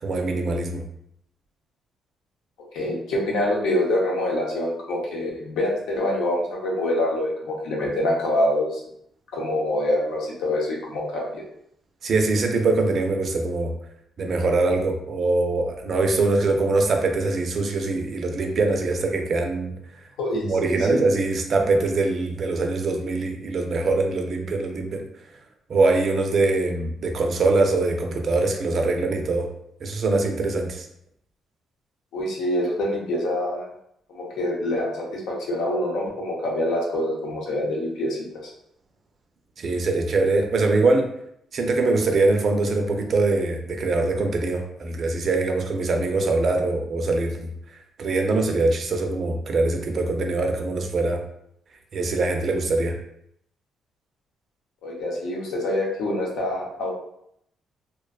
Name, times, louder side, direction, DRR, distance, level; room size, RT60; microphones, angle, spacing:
voice 1, 0.0-0.8 12.0-13.7 14.2-19.7 20.5-25.0 25.7-29.5 29.8-30.9 39.6-41.1 41.5-47.5 48.0-51.2 51.9-53.0, right 3 dB, 50° right, 3 dB, 0.4 m, -23 dB
voice 2, 2.7-8.8 9.3-11.4 20.2-21.0 32.1-33.7 34.1-38.2 38.4-38.5 54.8-56.9, left 1 dB, 85° left, -3 dB, 0.7 m, -25 dB
2.4 x 2.2 x 2.3 m, 0.73 s
cardioid pair, 90°, 0 cm